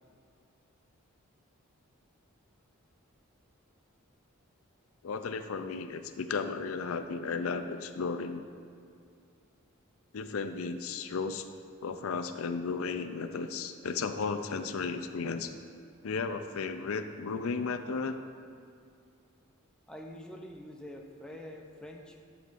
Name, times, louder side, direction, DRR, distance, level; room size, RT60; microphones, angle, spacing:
voice 1, 5.0-8.4 10.1-11.5 11.8-15.5 16.0-18.2, left 4 dB, 75° left, 9 dB, 0.5 m, -34 dB
voice 2, 19.9-22.2, left 1 dB, 5° left, 1 dB, 0.5 m, -45 dB
11.5 x 7.2 x 2.5 m, 2.4 s
head